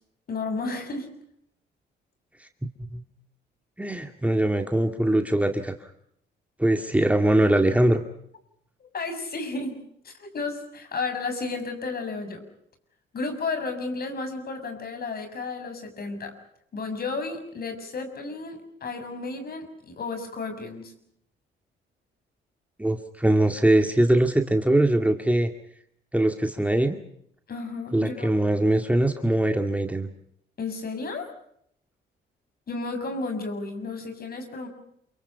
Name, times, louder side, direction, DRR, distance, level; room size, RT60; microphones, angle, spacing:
voice 1, 0.3-1.1 8.9-9.8 10.0-12.4 13.1-16.3 16.7-20.9 27.5-28.3 30.6-31.3 32.7-34.7, left 3 dB, 50° left, 7 dB, 6.7 m, -32 dB
voice 2, 3.8-5.7 6.6-8.0 22.8-25.5 26.1-27.0 27.9-30.1, right 1 dB, 5° right, 5 dB, 2.2 m, -22 dB
28.5 x 24.0 x 5.7 m, 0.70 s
cardioid pair, 90°, 20 cm